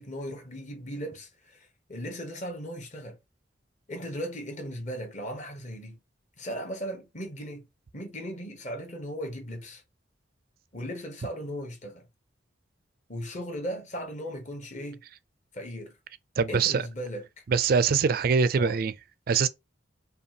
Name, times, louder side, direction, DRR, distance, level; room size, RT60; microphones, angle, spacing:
voice 1, 0.0-3.2 3.9-6.0 6.4-7.7 7.9-9.8 10.7-12.1 13.1-15.0 15.5-16.0 16.5-17.4 18.6-18.8, equal, 40° left, 1.0 m, -37 dB
voice 2, 16.4-16.8 17.5-18.9 19.3-19.5, right 5 dB, 50° right, 0.3 m, -23 dB
5.2 x 2.3 x 2.8 m
head